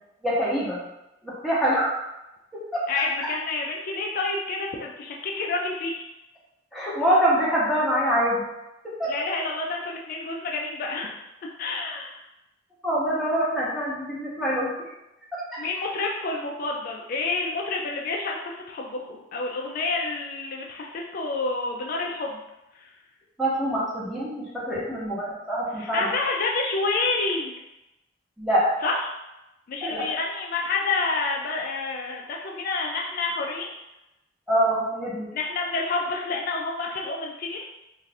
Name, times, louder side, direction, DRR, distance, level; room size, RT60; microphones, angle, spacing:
voice 1, 0.2-0.8 1.2-1.9 2.5-2.8 6.7-8.4 9.0-9.1 12.8-14.7 15.3-15.6 23.4-26.1 28.4-28.7 29.8-30.1 34.5-35.3, equal, ahead, -8 dB, 0.7 m, -25 dB
voice 2, 2.9-6.0 9.1-11.1 11.6-12.2 15.6-22.4 22.7-22.9 25.8-27.5 28.8-29.0 29.7-33.7 35.3-37.6, left 3 dB, 50° left, -1 dB, 0.3 m, -29 dB
2.5 x 2.4 x 3.2 m, 0.94 s
head